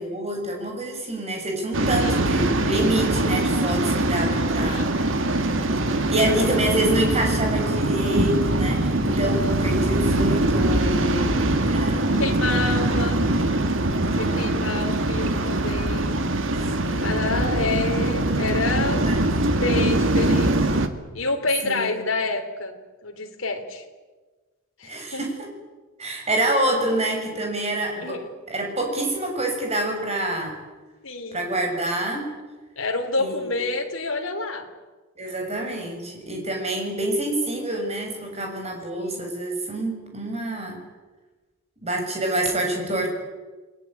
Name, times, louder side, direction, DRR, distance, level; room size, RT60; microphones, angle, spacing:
voice 1, 0.0-4.9 6.1-11.4 11.7-12.2 13.8-14.7 16.8-17.3 19.0-19.2 21.6-22.1 24.8-25.5 26.0-28.2 28.5-30.5 31.3-32.3 33.2-33.5 35.2-40.8 41.8-43.1, right 1 dB, 30° right, 3 dB, 6.7 m, -27 dB
Waves surf, 1.7-20.9, right 1 dB, 60° right, 1.9 m, -22 dB
voice 2, 4.6-5.1 6.2-6.4 9.0-9.6 11.2-13.2 14.0-16.2 17.0-19.1 19.5-20.7 21.1-22.8 23.0-23.8 24.8-25.2 28.0-28.3 31.0-31.5 32.8-34.7 38.9-39.1, left 3 dB, 60° left, 2 dB, 3.7 m, -29 dB
29.5 x 20.5 x 8.9 m, 1.3 s
head